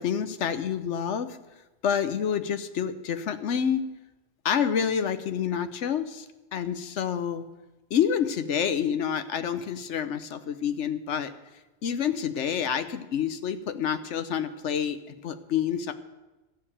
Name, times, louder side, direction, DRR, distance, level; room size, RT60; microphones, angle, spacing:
voice 1, 0.0-1.4 1.8-3.8 4.4-6.2 6.5-7.4 7.9-11.3 11.8-15.9, left 8 dB, 75° left, 10 dB, 1.1 m, -28 dB
13.5 x 6.7 x 8.7 m, 1.1 s
omnidirectional pair, 1.2 m